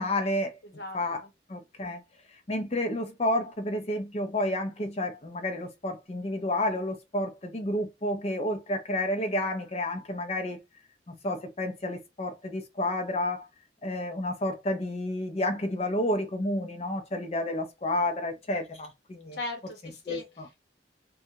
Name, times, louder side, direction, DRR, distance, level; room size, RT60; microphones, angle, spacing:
voice 1, 0.0-0.6 0.9-2.0 2.5-10.6 11.1-13.5 13.8-19.4 20.1-20.6, left 1 dB, 35° left, 0.6 m, -30 dB
voice 2, 0.6-1.3 19.3-20.2, left 2 dB, 60° left, 1.0 m, -39 dB
2.7 x 2.3 x 2.8 m
head